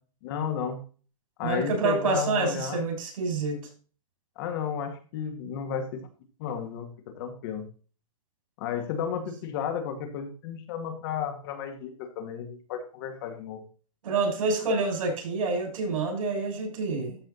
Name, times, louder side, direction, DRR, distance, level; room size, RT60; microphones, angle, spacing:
voice 1, 0.2-0.8 1.4-2.9 4.4-6.1 6.4-7.7 8.6-13.6, left 7 dB, 40° left, 5 dB, 2.1 m, -33 dB
voice 2, 1.4-3.6 14.0-17.2, right 3 dB, 70° right, 2 dB, 6.0 m, -27 dB
13.0 x 5.2 x 4.0 m, 0.38 s
hypercardioid pair, 160°, 18 cm